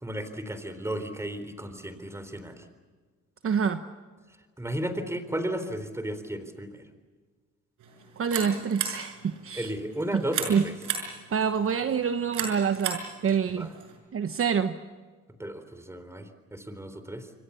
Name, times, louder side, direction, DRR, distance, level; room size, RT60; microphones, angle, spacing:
voice 1, 0.0-2.6 4.6-6.8 9.6-10.7 13.6-13.7 15.4-17.3, right 1 dB, 10° right, 10 dB, 3.9 m, -34 dB
voice 2, 3.4-3.8 8.2-9.7 10.1-10.2 10.5-10.6 11.3-13.7 14.1-14.8, right 7 dB, 45° right, 9 dB, 1.2 m, -26 dB
sound 1, 7.8-14.0, right 7 dB, 85° right, 6.0 m, -36 dB
28.0 x 24.0 x 7.1 m, 1.5 s
cardioid pair, 90°, 30 cm